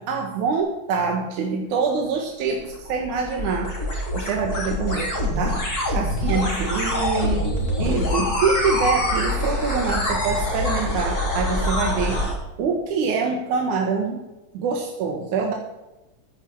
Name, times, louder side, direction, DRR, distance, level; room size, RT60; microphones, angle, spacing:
voice 1, 0.0-3.7 4.1-5.6 5.9-7.5 7.8-12.2 12.6-14.2 14.5-15.5, right 5 dB, 75° right, 1 dB, 2.7 m, -25 dB
sound 1, 2.5-12.3, left 1 dB, 30° left, 3.7 m, -25 dB
15.0 x 9.3 x 4.5 m, 1.0 s
omnidirectional pair, 3.5 m